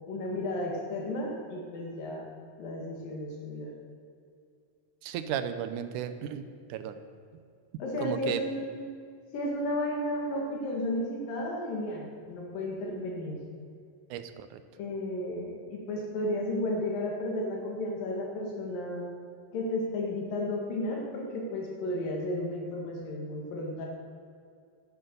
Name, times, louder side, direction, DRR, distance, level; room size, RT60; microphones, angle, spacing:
voice 1, 0.1-2.3 2.6-3.7 7.8-8.8 9.3-13.4 14.8-19.1 19.5-23.9, left 1 dB, 80° left, -1 dB, 3.7 m, -33 dB
voice 2, 5.0-6.9 8.0-8.4 14.1-14.6, right 9 dB, 75° right, 10 dB, 2.1 m, -34 dB
11.0 x 10.5 x 6.9 m, 2.4 s
omnidirectional pair, 3.9 m